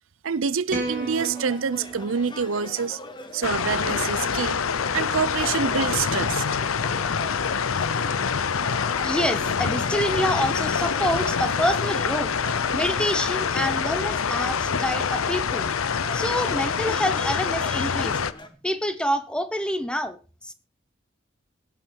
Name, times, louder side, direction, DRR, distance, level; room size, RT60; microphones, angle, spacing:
voice 1, 0.2-3.0 3.3-4.6 4.9-6.4, right 6 dB, 75° right, 0.6 m, -26 dB
sound 1, 0.7-3.1, right 3 dB, 35° right, 3.0 m, -34 dB
sound 2, 0.8-18.5, left 2 dB, 20° left, 1.4 m, -40 dB
sound 3, 3.4-18.3, left 6 dB, 85° left, 0.7 m, -26 dB
voice 2, 9.0-12.3 12.7-15.7 16.1-18.2 18.6-20.2 20.4-20.5, equal, 5° left, 1.0 m, -27 dB
17.5 x 9.2 x 4.6 m
head